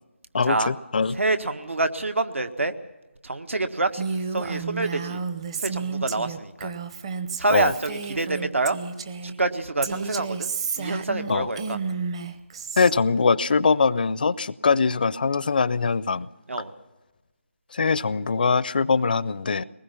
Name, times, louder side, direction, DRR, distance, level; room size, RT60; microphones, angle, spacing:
voice 1, 0.3-1.1 7.5-7.7 11.3-11.5 12.8-16.3 17.7-19.6, left 4 dB, 45° left, 18 dB, 0.6 m, -22 dB
voice 2, 1.1-2.7 3.2-5.2 5.6-6.7 7.4-8.8 9.2-10.5 10.8-11.8 16.5-16.7, right 2 dB, 75° right, 8 dB, 1.7 m, -26 dB
Female speech woman speaking, 4.0-9.4 9.8-12.9, right 5 dB, 25° right, 0.9 m, -31 dB
22.5 x 20.0 x 5.7 m, 1.1 s
figure-of-eight pair, 160°, 7 cm